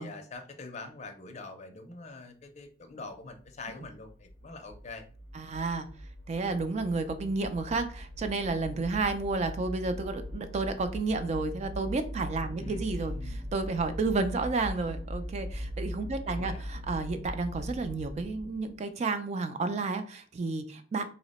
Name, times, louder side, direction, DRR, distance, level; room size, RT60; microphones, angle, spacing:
voice 1, 0.0-5.0 12.6-12.8 13.1-13.4 16.3-16.8, left 3 dB, 35° left, 6 dB, 0.5 m, -44 dB
sound 1, 3.4-18.7, equal, 80° right, 0.7 m, -40 dB
voice 2, 5.3-5.9 6.3-21.0, right 3 dB, 35° right, 9 dB, 0.3 m, -31 dB
2.8 x 2.1 x 4.0 m, 0.42 s
head